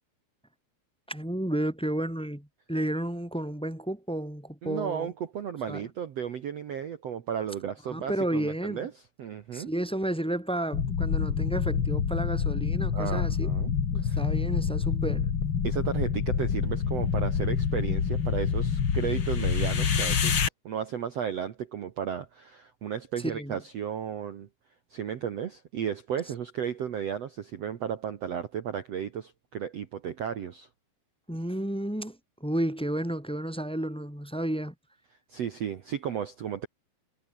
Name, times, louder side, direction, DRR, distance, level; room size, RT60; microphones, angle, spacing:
voice 1, 1.1-5.1 5.7-5.8 7.9-8.9 9.5-13.5 13.9-15.3 23.2-23.6 31.3-34.7, right 1 dB, ahead, 3.1 m, -32 dB
voice 2, 4.6-8.9 9.2-9.7 12.9-14.2 15.6-24.5 24.9-30.7 35.3-36.7, right 8 dB, 85° right, 1.4 m, -34 dB
sound 1, 10.7-20.5, left 7 dB, 40° left, 1.9 m, -27 dB
omnidirectional pair, 5.1 m